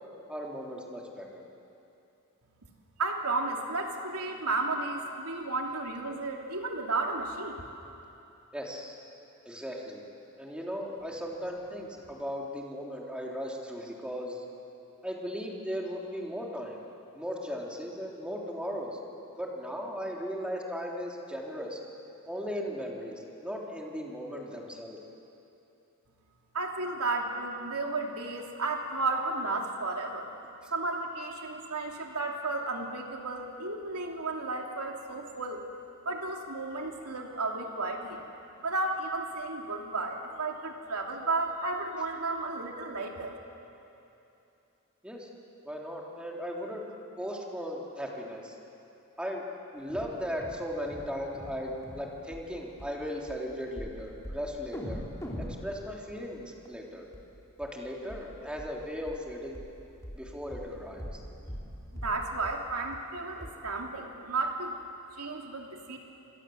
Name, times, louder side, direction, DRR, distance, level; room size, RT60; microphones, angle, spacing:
voice 1, 0.3-1.4 8.5-9.0 9.4-10.0 10.4-14.4 15.0-16.8 17.1-19.0 19.4-21.8 22.3-25.0 45.0-45.3 45.6-46.9 47.2-48.5 49.2-49.4 49.7-55.0 55.6-57.0 57.6-59.6 60.1-61.1, equal, 5° right, -2 dB, 3.3 m, -37 dB
voice 2, 3.0-7.7 26.5-30.3 30.7-35.6 36.0-38.2 38.6-43.4 62.0-64.8 65.1-66.0, right 3 dB, 85° right, 1 dB, 2.8 m, -33 dB
sound 1, 49.9-50.1 50.4-50.6 50.9-51.1 51.3-51.6 51.8-52.0 52.3-52.4 52.8-52.9 53.3-53.4 53.8-54.0 54.2-54.4 54.7-56.8 57.1-57.2 57.6-57.7 58.1-58.2 58.6-58.7 59.1-59.2 59.5-59.7 60.0-60.2 60.5-60.7 61.0-61.2 61.5-61.7 62.0-62.2 62.4-62.6 62.9-63.0 63.4-63.5, equal, 15° left, 3.8 m, -41 dB
28.5 x 25.5 x 7.9 m, 2.8 s
head